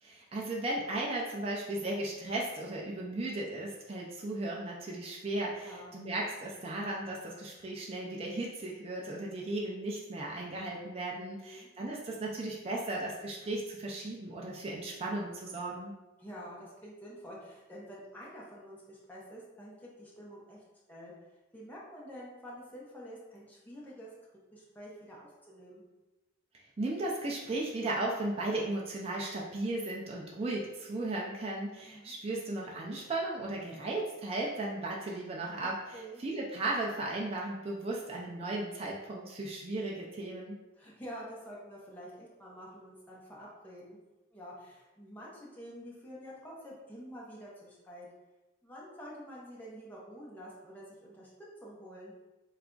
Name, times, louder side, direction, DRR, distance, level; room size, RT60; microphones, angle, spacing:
voice 1, 0.0-15.9 26.8-40.6, right 2 dB, 30° right, -3 dB, 0.4 m, -36 dB
voice 2, 5.6-6.0 11.3-11.7 16.2-21.1 21.5-24.1 24.5-25.9 31.9-32.1 35.6-36.2 40.8-44.0 44.3-48.1 48.6-51.3 51.6-52.2, equal, 10° left, -6 dB, 0.7 m, -48 dB
3.3 x 2.4 x 3.7 m, 1.1 s
head